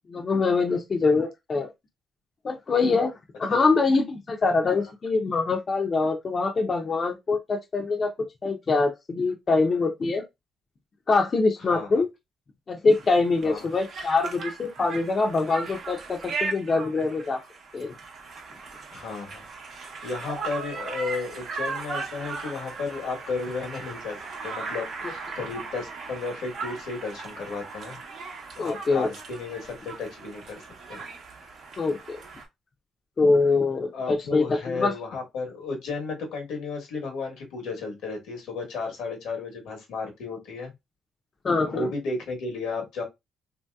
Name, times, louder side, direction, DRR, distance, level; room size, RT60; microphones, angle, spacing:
voice 1, 0.1-1.7 2.4-3.1 3.4-8.1 8.4-10.2 11.1-12.1 12.7-17.4 17.7-17.9 28.6-29.1 31.8-32.2 33.2-34.9 41.4-41.9, left 3 dB, 40° left, 0.5 m, -24 dB
voice 2, 11.6-12.0 13.4-13.7 18.9-19.4 19.7-24.2 24.4-28.0 28.5-30.6 30.9-31.0 33.9-40.7 41.7-43.0, left 4 dB, 85° left, 1.0 m, -33 dB
Conversation, 12.9-32.4, right 4 dB, 60° right, 0.8 m, -38 dB
3.0 x 2.7 x 2.2 m
cardioid pair, 90°, 0 cm